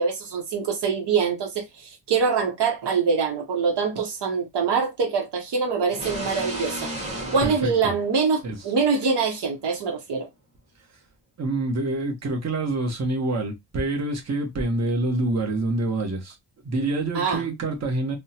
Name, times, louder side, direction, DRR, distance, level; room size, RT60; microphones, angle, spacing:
voice 1, 0.0-6.9 7.3-10.3 17.1-17.4, right 5 dB, 70° right, 0.8 m, -24 dB
sound 1, 5.9-8.7, right 1 dB, 15° right, 1.6 m, -34 dB
voice 2, 7.4-7.9 8.4-8.6 11.4-16.4 16.6-18.2, right 2 dB, 40° right, 0.9 m, -26 dB
3.5 x 2.1 x 2.8 m
wide cardioid pair, 140°, 42 cm